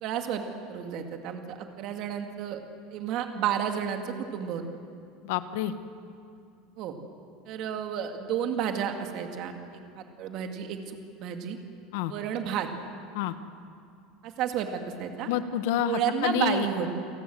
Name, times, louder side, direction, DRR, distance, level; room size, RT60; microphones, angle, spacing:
voice 1, 0.0-0.4 0.7-2.6 2.9-4.6 6.8-6.9 7.5-10.8 11.2-11.6 12.1-12.7 14.2-15.3 15.8-17.0, right 8 dB, 45° right, 5 dB, 2.2 m, -31 dB
voice 2, 5.2-5.7 11.9-12.1 13.1-13.3 15.3-16.7, left 11 dB, 70° left, 11 dB, 1.4 m, -28 dB
29.0 x 18.5 x 7.9 m, 2.4 s
supercardioid pair, 160°, 0 cm